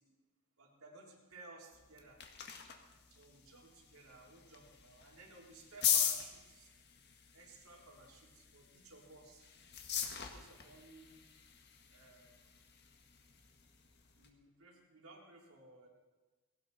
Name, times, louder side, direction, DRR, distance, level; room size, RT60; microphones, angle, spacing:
voice 1, 0.6-2.2 3.1-6.7 7.3-9.5 10.1-11.2 11.9-12.4 14.1-15.9, right 2 dB, 90° right, -1 dB, 3.7 m, -58 dB
sound 1, 1.7-14.3, left 8 dB, 50° left, 1.7 m, -41 dB
19.0 x 17.5 x 4.2 m, 1.2 s
head